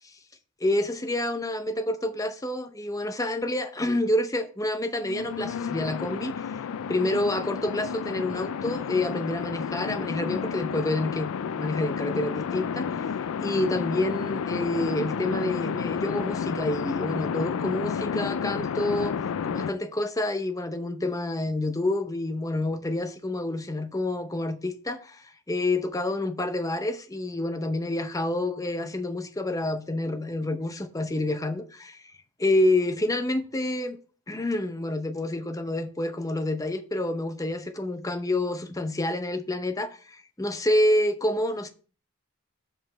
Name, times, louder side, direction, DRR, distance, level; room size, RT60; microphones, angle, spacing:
voice 1, 0.6-6.6 6.9-13.1 13.4-19.2 19.4-32.1 32.4-34.0 34.3-41.7, left 1 dB, 15° left, 0.7 m, -28 dB
sound 1, 5.0-19.7, left 6 dB, 80° left, 0.4 m, -31 dB
5.5 x 5.2 x 6.2 m
head